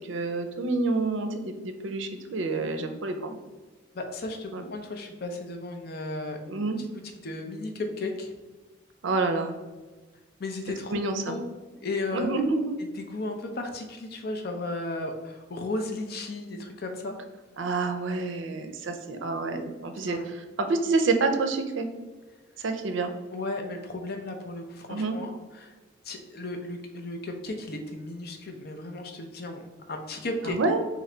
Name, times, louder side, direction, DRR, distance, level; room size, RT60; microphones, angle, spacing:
voice 1, 0.1-3.4 4.5-4.6 6.5-6.8 9.0-9.5 10.9-11.3 12.1-12.7 17.6-20.2 20.6-21.9 22.6-23.1 24.9-25.2 30.5-30.8, right 3 dB, 75° right, 7 dB, 0.5 m, -28 dB
voice 2, 3.9-8.3 10.4-11.0 11.3-11.5 11.7-12.3 12.9-17.2 20.0-20.2 23.3-25.7 26.0-30.6, left 2 dB, 50° left, 3 dB, 0.6 m, -35 dB
3.3 x 3.0 x 3.7 m, 1.3 s
head